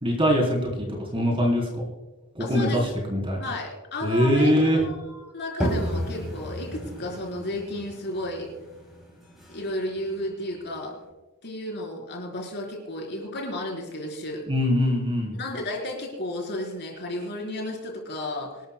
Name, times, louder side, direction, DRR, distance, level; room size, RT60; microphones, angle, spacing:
voice 1, 0.0-1.8 2.4-2.8 3.1-3.4 4.0-4.8 14.5-15.4, equal, 25° right, -1 dB, 3.7 m, -22 dB
voice 2, 2.4-2.9 3.4-8.5 9.5-11.0 11.4-14.5 15.3-18.6, left 1 dB, 50° left, -1 dB, 4.2 m, -33 dB
sound 1, 5.6-11.1, equal, ahead, 4.8 m, -33 dB
25.5 x 12.5 x 2.2 m, 1.2 s
head